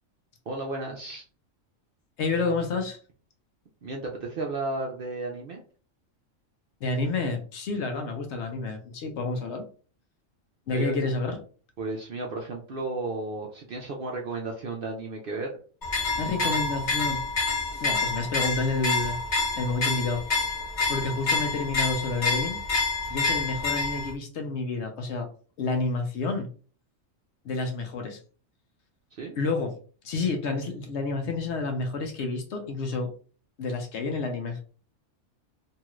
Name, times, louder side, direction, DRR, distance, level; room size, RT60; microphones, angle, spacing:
voice 1, 0.5-1.2 3.8-5.6 10.7-11.1 11.8-15.5 29.2-29.4, right 3 dB, 60° right, 0 dB, 0.6 m, -33 dB
voice 2, 2.2-3.0 6.8-9.7 10.7-11.4 16.2-17.2 17.7-19.2 19.5-20.3 20.9-22.6 23.1-25.3 25.6-26.5 27.4-28.2 29.4-29.8 30.0-33.1 33.6-34.6, left 3 dB, 65° left, 4 dB, 0.8 m, -29 dB
sound 1, 15.8-24.1, left 3 dB, 40° left, 1.0 m, -28 dB
2.8 x 2.4 x 3.0 m, 0.39 s
omnidirectional pair, 1.4 m